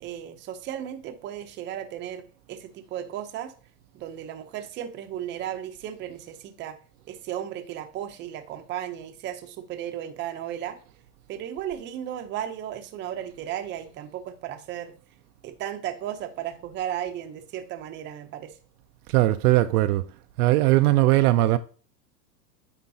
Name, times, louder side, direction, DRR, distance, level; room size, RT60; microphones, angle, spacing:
voice 1, 0.0-3.5 3.9-6.8 7.1-10.8 11.3-14.9 15.4-18.5, right 10 dB, 25° right, 0.6 m, -35 dB
voice 2, 19.1-20.0 20.4-21.6, right 16 dB, 65° right, 0.5 m, -19 dB
9.6 x 3.7 x 2.7 m
supercardioid pair, 135°, 50 cm